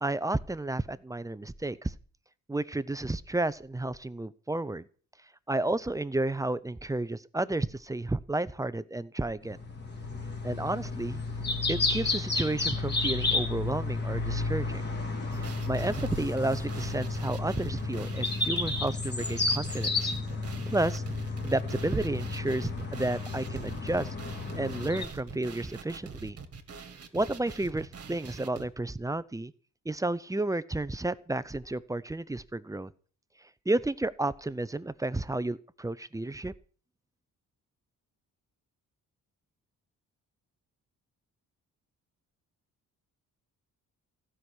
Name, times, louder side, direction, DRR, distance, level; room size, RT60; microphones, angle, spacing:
voice 1, 0.0-1.9 2.5-4.9 5.5-9.6 10.4-11.2 11.7-14.8 15.4-20.1 20.7-21.0 21.4-24.1 24.5-26.4 27.1-29.5 29.8-32.9 33.7-36.5, right 2 dB, 10° right, 16 dB, 0.6 m, -31 dB
Summer city birdsong, 9.4-25.0, left 3 dB, 30° left, 3.1 m, -32 dB
sound 1, 15.3-28.7, right 5 dB, 45° right, 2.2 m, -44 dB
15.5 x 6.3 x 9.9 m, 0.42 s
cardioid pair, 115°, 33 cm